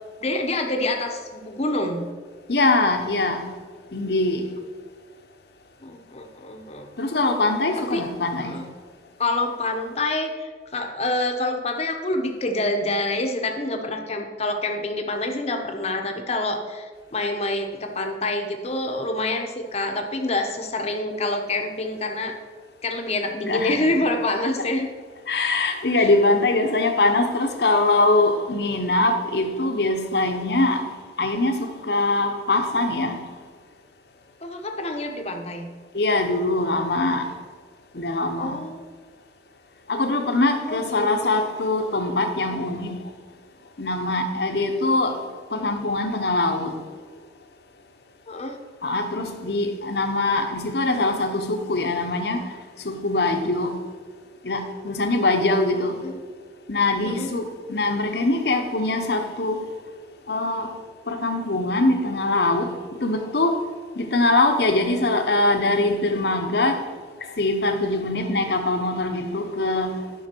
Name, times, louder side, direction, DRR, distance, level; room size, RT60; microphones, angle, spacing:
voice 1, 0.2-2.0 5.8-6.9 7.9-8.0 8.4-8.6 9.2-16.8 17.1-22.3 22.8-24.9 26.0-26.1 34.4-35.7 38.4-38.8 40.7-41.3 48.3-48.6 56.0-56.2 57.0-57.3, left 2 dB, 35° left, 0.9 m, -27 dB
voice 2, 2.5-3.5 3.9-4.4 7.0-8.6 23.5-23.8 25.3-30.9 31.2-33.3 35.9-37.3 37.9-38.6 39.9-43.0 43.8-45.2 45.5-46.8 48.8-52.5 52.8-53.7 54.4-56.0 56.7-59.7 60.3-60.7 61.1-63.5 63.9-66.8 67.4-70.0, left 2 dB, 65° left, 1.0 m, -22 dB
10.5 x 5.7 x 4.5 m
head